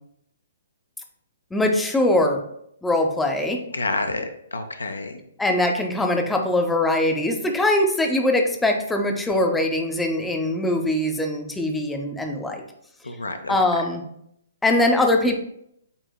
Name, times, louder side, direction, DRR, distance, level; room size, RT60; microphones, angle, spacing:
voice 1, 1.5-2.4 2.8-3.6 5.4-12.6 13.5-14.0 14.6-15.4, left 1 dB, 5° left, 3 dB, 0.5 m, -22 dB
voice 2, 3.7-5.2 13.0-13.6, left 2 dB, 80° left, 7 dB, 0.5 m, -29 dB
8.2 x 2.8 x 2.3 m, 0.73 s
figure-of-eight pair, 125°, 0 cm